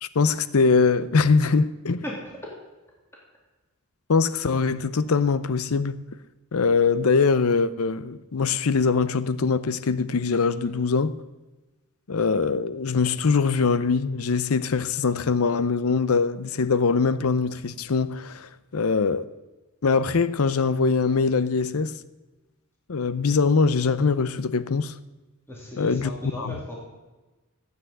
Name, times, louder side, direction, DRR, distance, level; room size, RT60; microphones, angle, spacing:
voice 1, 0.0-2.0 4.1-6.0 6.5-11.2 12.1-19.3 19.8-22.0 22.9-24.9 25.8-26.1 26.4-26.6, left 4 dB, 90° left, 0.7 m, -22 dB
voice 2, 25.5-26.8, left 1 dB, 10° left, 2.7 m, -36 dB
12.5 x 8.2 x 7.9 m
head